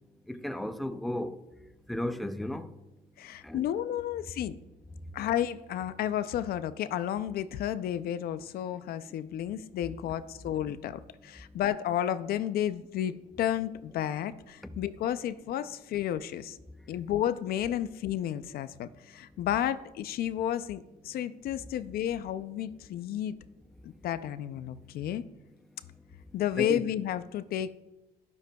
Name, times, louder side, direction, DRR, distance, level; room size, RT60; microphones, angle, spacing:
voice 1, 0.3-1.4 1.9-2.7 3.4-3.7 14.6-14.7 26.6-26.8, left 1 dB, ahead, 0.5 m, -34 dB
voice 2, 3.2-4.6 5.1-16.6 16.9-23.3 23.8-25.2 26.3-27.7, left 11 dB, 65° left, 0.5 m, -32 dB
12.0 x 11.5 x 2.3 m
cardioid pair, 110°, 17 cm